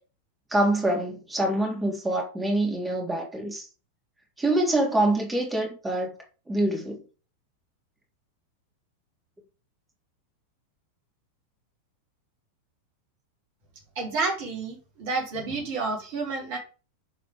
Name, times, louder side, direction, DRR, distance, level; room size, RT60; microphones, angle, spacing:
voice 1, 0.5-3.6 4.4-6.1 6.5-7.0, right 1 dB, 10° right, 3.1 m, -25 dB
voice 2, 14.0-16.6, right 3 dB, 50° right, 3.6 m, -30 dB
10.5 x 5.0 x 3.7 m
figure-of-eight pair, 90°, 0 cm